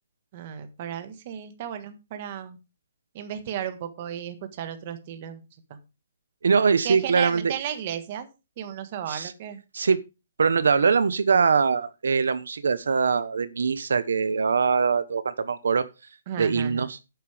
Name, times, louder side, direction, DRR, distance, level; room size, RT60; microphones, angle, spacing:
voice 1, 0.3-2.6 3.1-5.4 5.7-5.8 6.8-8.3 8.6-9.6 16.3-16.9, right 9 dB, 25° right, 9 dB, 1.5 m, -34 dB
voice 2, 6.4-7.4 9.1-9.3 9.7-10.0 10.4-15.9 16.4-17.0, right 5 dB, 70° right, 14 dB, 1.1 m, -22 dB
11.5 x 9.4 x 3.5 m, 0.28 s
hypercardioid pair, 180°, 0 cm